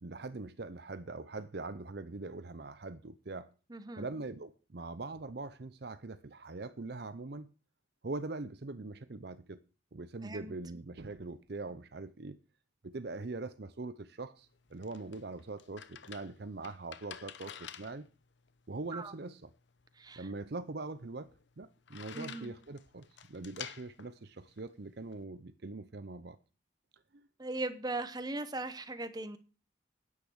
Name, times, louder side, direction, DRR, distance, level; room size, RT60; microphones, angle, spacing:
voice 1, 0.0-3.5 4.0-7.5 8.0-9.6 9.9-12.4 12.8-18.1 18.7-19.5 20.2-21.3 21.6-26.4, right 3 dB, 55° right, 0.7 m, -42 dB
voice 2, 3.7-4.1 10.2-10.5 18.9-19.1 20.0-20.3 22.1-22.5 27.4-29.4, right 2 dB, 20° right, 0.9 m, -39 dB
sound 1, 14.4-25.2, left 8 dB, 65° left, 0.8 m, -51 dB
10.0 x 8.4 x 6.2 m
head